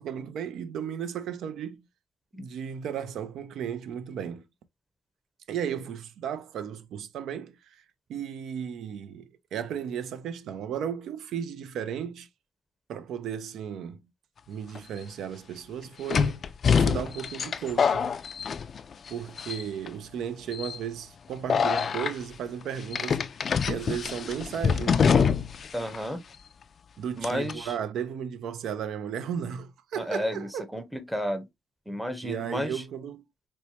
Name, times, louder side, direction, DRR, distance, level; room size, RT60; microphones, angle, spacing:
voice 1, 0.0-1.8 2.4-4.5 5.5-7.8 8.1-12.3 12.9-14.0 14.5-18.1 19.1-23.2 23.7-25.4 27.0-30.6 32.2-33.3, right 8 dB, 75° right, 0.5 m, -35 dB
sound 1, 14.8-14.9 16.1-19.1 19.4-19.9 20.5-20.8 21.5-22.1 22.9-25.7 25.9-26.0 27.2-27.5, left 6 dB, 50° left, 0.3 m, -25 dB
voice 2, 25.7-26.2 27.2-27.7 29.9-31.5 31.9-32.8, equal, 5° right, 0.7 m, -32 dB
4.4 x 2.1 x 2.7 m
cardioid pair, 90°, 0 cm